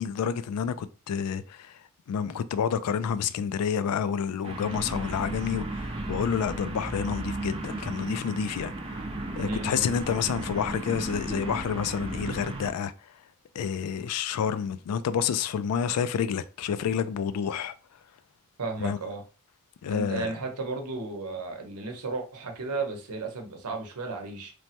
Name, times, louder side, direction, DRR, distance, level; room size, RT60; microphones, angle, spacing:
voice 1, 0.0-1.8 2.1-8.7 9.4-12.9 13.6-17.7 18.8-19.0 19.8-20.3, left 7 dB, 80° left, 0.3 m, -29 dB
sound 1, 4.4-12.7, right 2 dB, 25° right, 0.5 m, -35 dB
voice 2, 9.4-9.8 18.6-19.2 19.9-24.5, right 3 dB, 80° right, 0.8 m, -34 dB
3.2 x 2.0 x 2.8 m
head